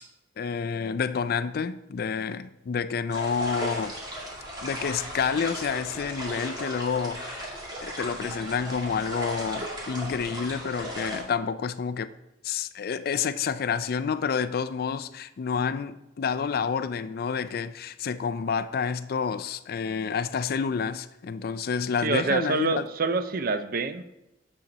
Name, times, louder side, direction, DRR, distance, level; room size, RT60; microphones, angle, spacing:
voice 1, 0.4-4.0 4.6-7.5 7.8-12.1 12.4-22.8, left 6 dB, 55° left, 0.4 m, -29 dB
sound 1, 3.1-11.2, equal, 25° right, 2.0 m, -36 dB
voice 2, 22.0-24.0, right 4 dB, 50° right, 0.5 m, -26 dB
8.7 x 6.7 x 4.0 m
head